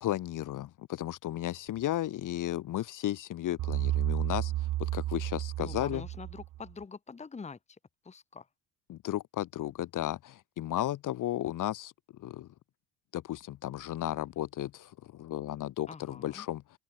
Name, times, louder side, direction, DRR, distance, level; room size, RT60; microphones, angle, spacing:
voice 1, 0.0-6.0 8.9-11.9 12.2-12.5 13.1-16.6, left 13 dB, 50° left, 1.2 m, -34 dB
sound 1, 3.6-6.7, right 15 dB, 55° right, 1.0 m, -32 dB
voice 2, 5.6-7.8 8.0-8.5 15.9-16.5, left 5 dB, 15° left, 1.1 m, -45 dB
open air
supercardioid pair, 80°, 40 cm